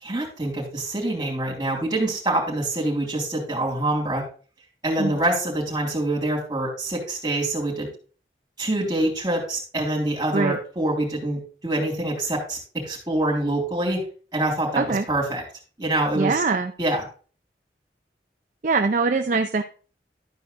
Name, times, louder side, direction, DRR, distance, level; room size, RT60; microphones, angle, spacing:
voice 1, 0.0-4.2 4.8-7.9 8.6-12.6 12.8-14.0 14.3-15.4 15.8-16.4 16.8-17.0, right 1 dB, 20° right, -2 dB, 3.6 m, -25 dB
voice 2, 16.1-16.7 18.6-19.6, right 4 dB, 45° right, 6 dB, 0.5 m, -22 dB
12.5 x 4.8 x 4.0 m, 0.38 s
head